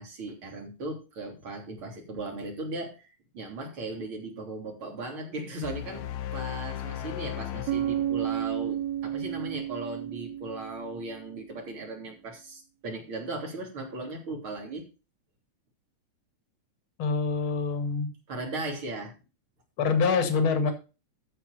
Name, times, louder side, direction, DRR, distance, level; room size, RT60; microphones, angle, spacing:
voice 1, 0.0-14.9 18.3-19.1 20.7-20.8, right 2 dB, 45° right, 1 dB, 3.8 m, -37 dB
sound 1, 5.6-8.9, left 11 dB, 75° left, 2.0 m, -37 dB
Bass guitar, 7.7-11.5, right 11 dB, 75° right, 1.8 m, -32 dB
voice 2, 17.0-18.1 19.8-20.7, left 5 dB, 50° left, 8 dB, 2.4 m, -25 dB
13.5 x 4.8 x 6.6 m, 0.32 s
omnidirectional pair, 3.3 m